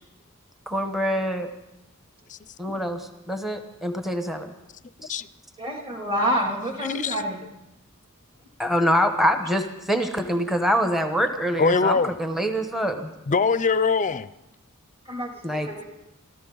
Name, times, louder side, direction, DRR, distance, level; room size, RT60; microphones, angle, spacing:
voice 1, 0.7-1.5 2.6-4.5 5.0-5.1 8.6-13.1 15.4-15.7, equal, ahead, 6 dB, 1.0 m, -25 dB
voice 2, 5.6-7.4 15.1-15.8, equal, 25° right, 1 dB, 2.7 m, -27 dB
voice 3, 6.9-7.2 11.6-12.1 13.3-14.3, left 5 dB, 35° left, 15 dB, 0.5 m, -23 dB
26.0 x 14.0 x 3.9 m, 0.91 s
head